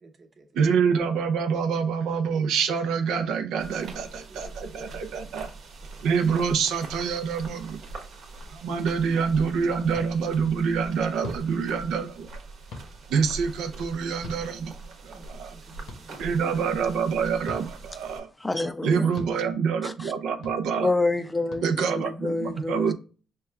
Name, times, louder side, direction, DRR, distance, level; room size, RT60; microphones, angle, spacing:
voice 1, 0.0-0.6 3.9-5.2 15.1-16.3 21.3-21.6, right 2 dB, 40° right, 1.0 m, -53 dB
voice 2, 0.5-5.5 6.0-7.8 8.5-12.3 13.1-14.7 15.0-15.5 16.2-18.3 18.8-20.9 21.6-22.9, right 6 dB, 85° right, 0.6 m, -26 dB
sound 1, 3.6-18.2, right 3 dB, 70° right, 1.1 m, -43 dB
sound 2, 9.9-10.1 11.2-11.4 12.7-12.9 14.2-14.4 15.9-16.0 17.4-17.6 19.1-19.3 20.4-20.6 21.5-21.6, left 2 dB, 85° left, 1.1 m, -39 dB
voice 3, 18.4-19.1 19.8-20.1 20.8-22.9, left 2 dB, 10° left, 0.4 m, -28 dB
5.4 x 2.3 x 3.4 m
cardioid pair, 90°, 0 cm